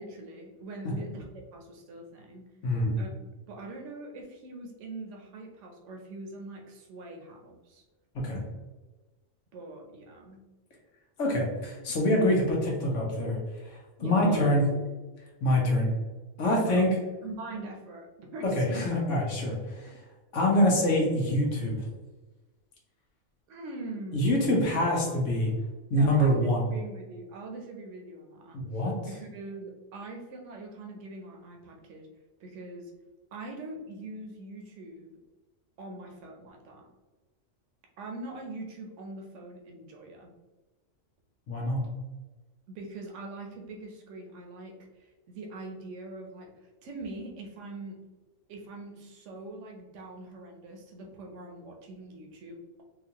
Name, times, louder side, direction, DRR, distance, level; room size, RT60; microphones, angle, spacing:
voice 1, 0.0-2.4 3.0-7.8 9.5-10.4 14.0-14.8 16.4-16.9 17.2-18.9 23.5-24.4 24.9-25.2 25.9-28.6 29.1-32.1 32.4-32.9 33.3-35.1 35.8-36.9 38.0-40.3 42.7-44.7 45.0-46.5 46.8-48.0 48.5-52.8, right 2 dB, 80° right, 2 dB, 1.0 m, -42 dB
voice 2, 2.6-2.9 8.1-8.4 11.2-13.4 13.6-14.6 15.4-15.9 16.4-16.9 18.4-20.0 20.3-21.8 24.1-25.5 25.9-26.6 28.5-28.9 41.5-41.8, left 1 dB, 90° left, -2 dB, 1.3 m, -25 dB
4.1 x 2.4 x 2.9 m, 1.2 s
omnidirectional pair, 1.2 m